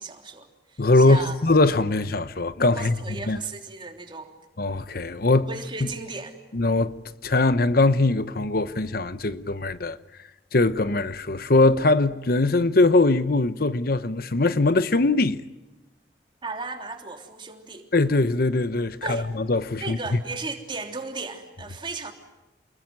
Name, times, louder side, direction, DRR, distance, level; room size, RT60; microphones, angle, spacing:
voice 1, 0.0-1.4 2.7-4.3 5.4-6.4 16.4-17.9 19.0-19.3 19.8-22.1, right 3 dB, 25° right, 3.3 m, -35 dB
voice 2, 0.8-2.9 3.3-3.4 4.6-5.5 6.5-6.9 7.2-10.0 10.5-15.4 17.9-20.0, left 2 dB, 55° left, 0.9 m, -21 dB
28.5 x 21.5 x 9.5 m
head